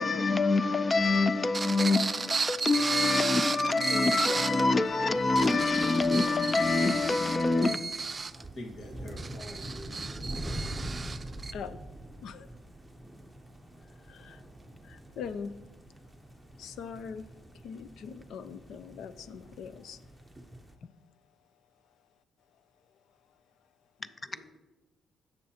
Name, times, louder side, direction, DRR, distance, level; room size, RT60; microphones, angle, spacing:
voice 1, 0.0-7.8 20.8-20.9, left 3 dB, 30° left, 13 dB, 0.5 m, -26 dB
sound 1, 1.5-4.7 5.2-11.5, right 4 dB, 30° right, 0.4 m, -33 dB
voice 2, 3.6-4.4 11.5-11.8 12.2-12.5 14.1-14.4 14.8-15.5 16.6-17.2 17.6-20.0, left 6 dB, 75° left, 13 dB, 0.6 m, -41 dB
sound 2, 3.9-20.7, right 1 dB, 5° right, 0.9 m, -45 dB
voice 3, 8.3-10.1 24.0-24.6, left 1 dB, 55° left, 0 dB, 1.7 m, -46 dB
16.5 x 6.7 x 2.9 m, 1.1 s
cardioid pair, 90°, 0 cm